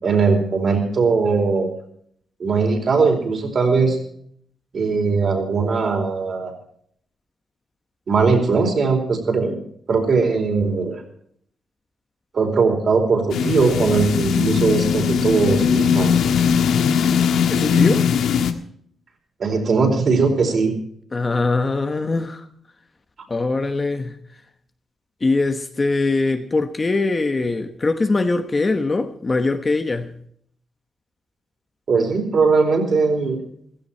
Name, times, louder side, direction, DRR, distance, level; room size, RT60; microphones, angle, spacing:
voice 1, 0.0-1.7 2.4-4.0 4.7-6.5 8.1-9.6 9.9-11.0 12.3-16.1 19.4-20.7 31.9-33.4, right 4 dB, 45° right, 4.6 m, -19 dB
sound 1, 13.3-18.5, left 7 dB, 90° left, 1.4 m, -19 dB
voice 2, 17.5-18.1 21.1-22.5 23.3-24.2 25.2-30.1, left 3 dB, 25° left, 1.1 m, -22 dB
16.0 x 16.0 x 4.4 m
wide cardioid pair, 150°, 0 cm